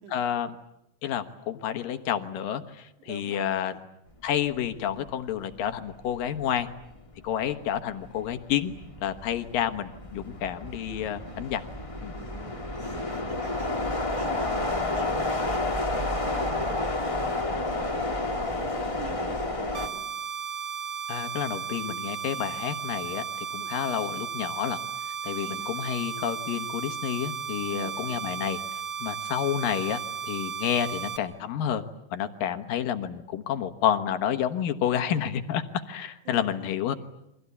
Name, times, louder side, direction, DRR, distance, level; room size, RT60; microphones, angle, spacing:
voice 1, 0.1-0.5 1.0-3.7 4.2-6.7 7.2-8.7 9.0-11.6 12.0-12.1 21.1-23.2 23.5-24.8 25.2-28.6 29.0-30.0 30.3-31.8 32.1-36.9, left 9 dB, 75° left, 8 dB, 3.0 m, -29 dB
voice 2, 3.0-3.8 12.2-20.1 23.6-23.7 25.4-25.7 27.7-28.3 36.3-36.5, right 5 dB, 60° right, 5 dB, 3.6 m, -46 dB
sound 1, 4.9-5.1 5.5-19.9, left 2 dB, 15° left, 1.2 m, -31 dB
sound 2, 19.7-31.2, right 7 dB, 45° right, 1.9 m, -35 dB
29.5 x 24.0 x 8.4 m, 0.83 s
omnidirectional pair, 4.1 m